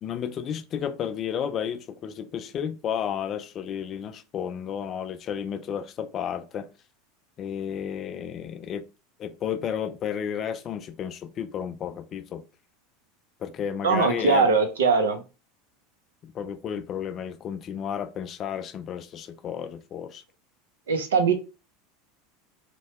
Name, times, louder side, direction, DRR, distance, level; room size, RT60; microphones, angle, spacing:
voice 1, 0.0-6.7 7.4-8.8 9.2-12.4 13.4-14.5 16.2-20.2, left 8 dB, 40° left, 0.3 m, -32 dB
voice 2, 13.8-15.2 20.9-21.3, right 4 dB, 80° right, 0.5 m, -21 dB
2.7 x 2.1 x 2.9 m
hypercardioid pair, 90°, 0 cm